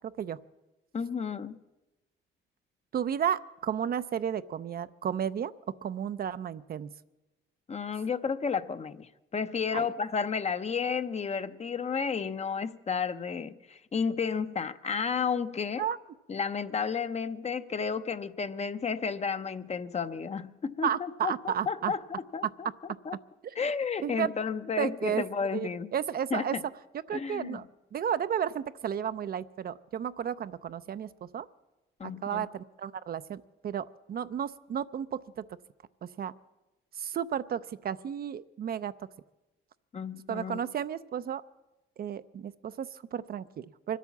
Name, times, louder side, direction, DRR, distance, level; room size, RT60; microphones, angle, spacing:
voice 1, 0.9-1.6 7.7-15.9 16.3-22.7 23.0-23.2 23.6-25.9 26.3-26.6 27.1-27.6 32.0-32.5 39.9-40.6, left 6 dB, 35° left, 12 dB, 0.7 m, -32 dB
voice 2, 2.9-5.5 5.8-6.9 9.7-9.9 15.8-16.0 20.8-21.9 23.4-23.5 24.0-24.3 24.8-25.2 25.5-26.6 27.1-27.6 27.9-31.5 32.0-35.4 36.0-36.3 37.0-38.9 40.3-41.4 42.0-44.0, right 8 dB, 50° right, 13 dB, 0.5 m, -33 dB
24.5 x 8.3 x 7.2 m, 1.0 s
cardioid pair, 90°, 20 cm